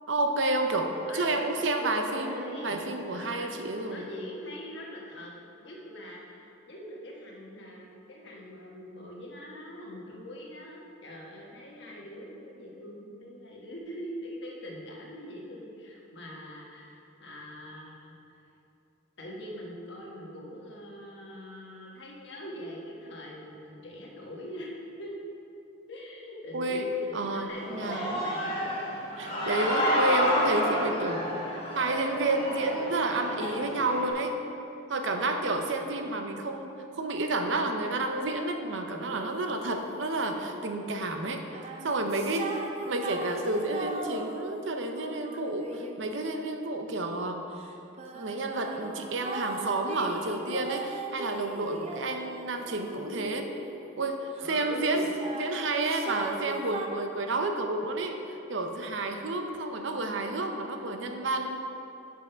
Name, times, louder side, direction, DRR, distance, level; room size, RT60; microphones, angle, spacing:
voice 1, 0.1-4.1 26.5-26.9 27.1-28.2 29.2-31.3 31.7-34.4 34.9-36.7 37.0-41.4 41.8-47.5 48.1-53.5 54.0-55.1 55.3-61.7, right 2 dB, 70° right, 5 dB, 0.6 m, -30 dB
voice 2, 1.1-1.4 1.8-2.8 3.1-3.5 3.8-5.3 5.6-18.1 19.2-25.2 25.9-28.8 54.4-55.1, equal, 60° left, -2 dB, 1.3 m, -42 dB
Human voice / Cheering, 27.5-34.1, equal, 25° left, 1.4 m, -30 dB
sound 1, 39.0-40.7 41.4-47.0 47.6-54.5 54.8-56.9, right 2 dB, 30° right, 0.5 m, -40 dB
6.3 x 5.6 x 5.7 m, 2.8 s
head